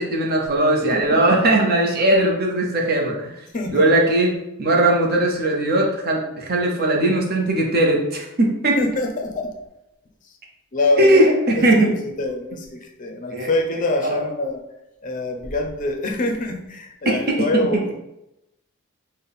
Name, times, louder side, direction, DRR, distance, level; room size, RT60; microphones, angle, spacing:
voice 1, 0.0-3.3 3.7-4.3 4.6-8.8 11.0-11.9 13.3-13.5 14.0-14.2 17.1-17.2, right 1 dB, 45° right, 0 dB, 0.7 m, -19 dB
voice 2, 0.9-1.4 3.5-3.9 8.8-9.5 10.7-11.9 12.2-14.6 15.0-17.9, left 2 dB, 35° left, 3 dB, 0.5 m, -25 dB
4.1 x 2.1 x 3.5 m, 0.89 s
head